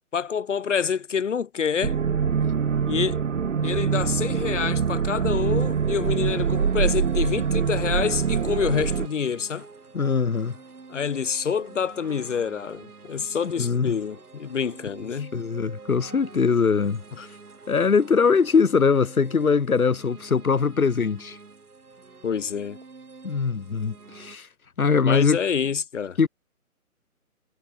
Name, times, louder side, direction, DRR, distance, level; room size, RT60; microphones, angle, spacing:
voice 1, 0.1-2.0 2.9-3.2 3.6-9.7 10.9-15.3 17.2-17.3 22.2-22.8 25.0-26.2, left 7 dB, 55° left, 4.7 m, -27 dB
sound 1, 1.8-9.1, right 6 dB, 60° right, 2.2 m, -24 dB
sound 2, 4.6-24.4, right 4 dB, 80° right, 7.2 m, -47 dB
voice 2, 9.9-10.5 13.6-14.0 15.2-17.0 17.7-21.4 23.2-24.5 24.8-25.4 26.2-26.3, left 5 dB, 70° left, 3.5 m, -22 dB
hypercardioid pair, 155°, 44 cm